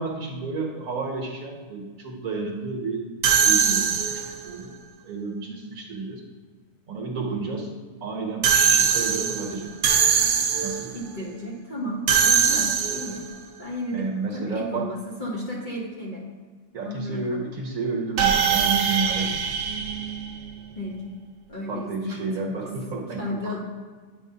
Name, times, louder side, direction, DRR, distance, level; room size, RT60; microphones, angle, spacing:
voice 1, 0.0-3.0 3.4-4.7 5.0-6.2 6.9-7.7 8.0-9.8 10.6-10.9 12.3-12.4 13.9-14.9 16.7-19.8 21.7-23.5, right 4 dB, 60° right, 0 dB, 1.4 m, -31 dB
sound 1, 3.2-4.5 8.4-11.0 12.1-13.3 18.2-20.7, right 7 dB, 75° right, 1.2 m, -22 dB
voice 2, 10.9-13.2 13.6-16.2 16.8-17.5 20.8-21.1 21.5-22.7 23.2-23.6, equal, 35° left, -5 dB, 1.0 m, -33 dB
9.0 x 5.2 x 2.8 m, 1.5 s
omnidirectional pair, 1.7 m